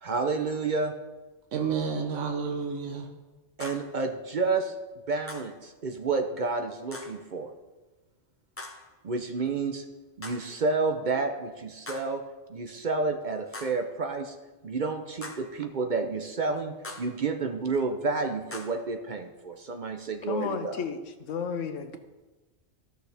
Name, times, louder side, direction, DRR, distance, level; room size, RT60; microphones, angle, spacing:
voice 1, 0.0-0.9 3.6-4.7 5.1-7.5 9.0-9.8 10.2-12.2 12.5-14.3 14.6-20.8, right 4 dB, 45° right, 5 dB, 0.7 m, -30 dB
voice 2, 1.5-3.1, right 6 dB, 80° right, 2 dB, 1.2 m, -30 dB
sound 1, 3.6-4.0 5.3-5.6 6.9-7.3 8.6-8.9 10.2-10.6 11.9-12.2 13.5-13.9 15.2-15.6 16.8-17.2 18.5-18.9, left 2 dB, 15° left, 0.6 m, -42 dB
voice 3, 20.2-22.0, left 6 dB, 90° left, 8 dB, 1.1 m, -33 dB
14.5 x 6.3 x 3.4 m, 1.2 s
omnidirectional pair, 1.2 m